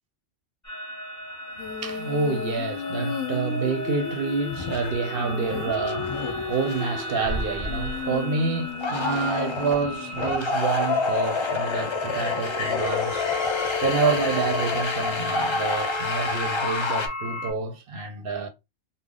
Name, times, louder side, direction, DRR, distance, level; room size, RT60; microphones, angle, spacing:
sound 1, 0.6-17.5, left 1 dB, 15° left, 0.8 m, -36 dB
Female singing, 1.6-10.5 12.7-16.9, left 9 dB, 90° left, 1.0 m, -35 dB
voice 1, 1.7-18.5, right 4 dB, 60° right, 0.7 m, -28 dB
sound 2, 4.5-5.0 5.3-6.8 7.2-8.1 8.7-17.1, left 3 dB, 45° left, 0.4 m, -28 dB
3.5 x 2.0 x 3.6 m
omnidirectional pair, 1.2 m